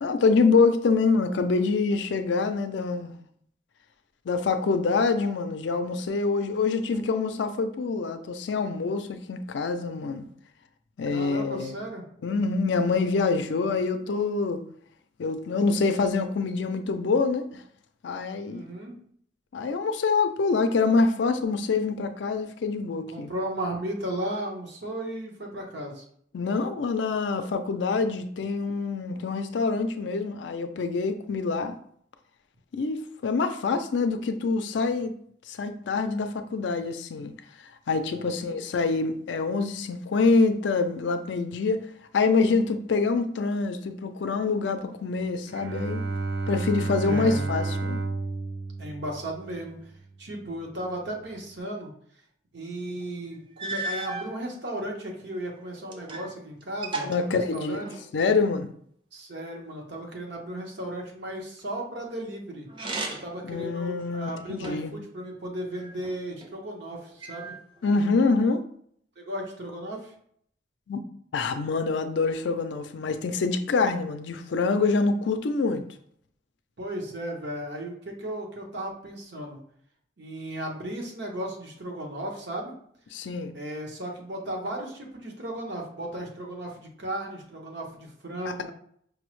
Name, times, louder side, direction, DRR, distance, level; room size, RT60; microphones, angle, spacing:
voice 1, 0.0-3.1 4.3-10.3 11.0-11.8 12.2-14.7 15.2-17.6 18.0-18.6 19.5-23.3 26.3-31.8 32.7-35.2 35.5-37.3 37.9-41.8 42.1-46.0 46.5-48.0 57.0-57.8 58.1-58.7 63.4-64.9 67.8-68.6 70.9-71.0 71.3-75.8 83.1-83.5, left 4 dB, 75° left, 0.4 m, -25 dB
voice 2, 11.1-12.0 18.5-18.9 23.1-26.0 38.1-38.6 47.0-47.5 48.8-49.9 50.2-51.9 52.5-57.9 59.1-62.7 63.1-67.6 69.2-70.1 76.8-79.6 80.2-82.7 83.5-88.7, right 1 dB, 65° right, 0.9 m, -35 dB
Bowed string instrument, 45.5-50.0, right 3 dB, 85° right, 0.5 m, -31 dB
sound 1, 53.0-53.1 53.6-54.3 55.1-56.3 56.6-58.1 62.7-63.4 64.0-65.0 65.7-66.5 67.2-68.0, right 2 dB, 25° right, 0.4 m, -36 dB
5.3 x 2.1 x 3.0 m
head